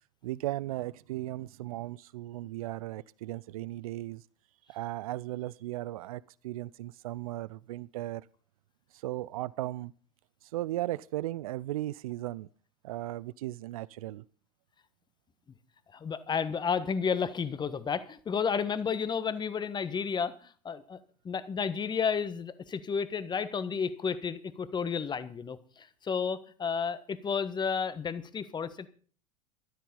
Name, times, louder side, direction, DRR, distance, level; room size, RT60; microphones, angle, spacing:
voice 1, 0.2-4.2 4.7-8.2 9.0-9.9 10.5-12.5 12.8-14.2, right 16 dB, 65° right, 0.6 m, -36 dB
voice 2, 15.9-21.0 21.2-28.9, left 6 dB, 20° left, 1.4 m, -32 dB
13.0 x 12.5 x 5.4 m
figure-of-eight pair, 80°, 20 cm